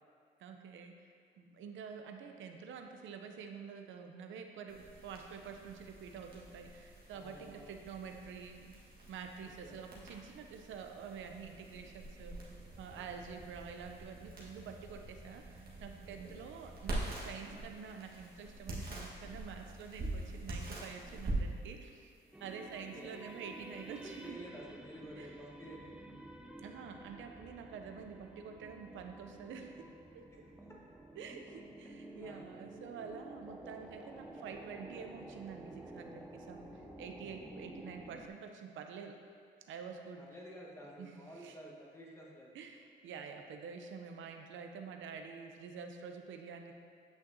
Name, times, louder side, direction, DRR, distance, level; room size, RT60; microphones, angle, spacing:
voice 1, 0.4-0.9 1.4-8.7 9.1-12.5 12.8-22.1 22.4-24.4 25.1-25.3 26.6-29.9 30.1-30.2 31.2-36.7 37.0-39.2 39.7-40.2 41.0-41.6 42.5-46.7, right 6 dB, 75° right, 4 dB, 0.6 m, -48 dB
sound 1, 4.7-24.3, right 2 dB, 50° right, 1.6 m, -45 dB
voice 2, 7.1-7.8 9.6-9.8 12.9-13.1 16.0-16.4 22.7-23.1 24.0-25.9 30.3-30.5 32.2-32.5 40.2-42.6, equal, 15° left, -3 dB, 1.3 m, -51 dB
sound 2, 22.3-38.3, right 1 dB, 5° right, 0.5 m, -51 dB
8.9 x 5.8 x 2.7 m, 2.2 s
cardioid pair, 90°, 20 cm